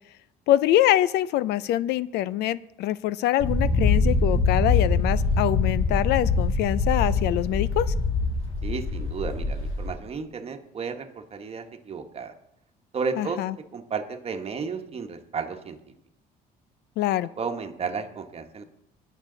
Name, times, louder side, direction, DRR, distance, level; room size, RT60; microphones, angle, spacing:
voice 1, 0.5-7.9 13.2-13.6 17.0-17.3, left 13 dB, 80° left, 19 dB, 0.4 m, -24 dB
sound 1, 3.4-9.9, left 3 dB, 35° left, 5.2 m, -24 dB
voice 2, 8.6-12.3 12.9-13.4 13.7-15.8 17.4-18.6, right 5 dB, 35° right, 7 dB, 1.3 m, -33 dB
19.5 x 6.6 x 3.9 m, 0.79 s
cardioid pair, 110°, 17 cm